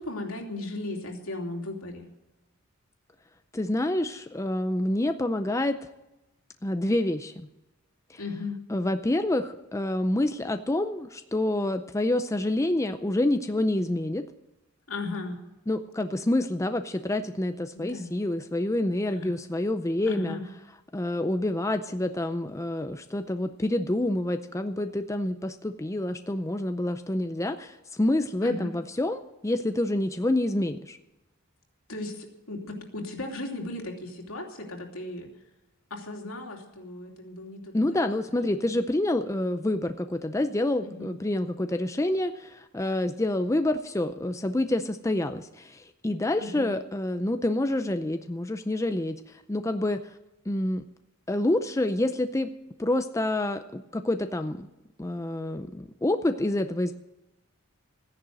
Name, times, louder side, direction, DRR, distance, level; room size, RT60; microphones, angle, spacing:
voice 1, 0.0-2.1 8.2-8.6 14.9-15.4 17.7-18.1 19.1-19.4 20.1-20.4 28.4-28.7 31.9-35.3 35.9-38.7 40.8-41.2 46.4-46.7, left 2 dB, 75° left, 1 dB, 3.0 m, -36 dB
voice 2, 3.5-5.8 6.6-7.5 8.1-8.2 8.7-14.2 15.7-20.4 20.9-31.0 37.7-49.2 49.5-50.0 50.5-50.8 51.3-52.5 52.8-54.7 55.0-56.9, left 1 dB, 15° left, 8 dB, 0.5 m, -27 dB
15.0 x 10.5 x 7.6 m, 0.99 s
head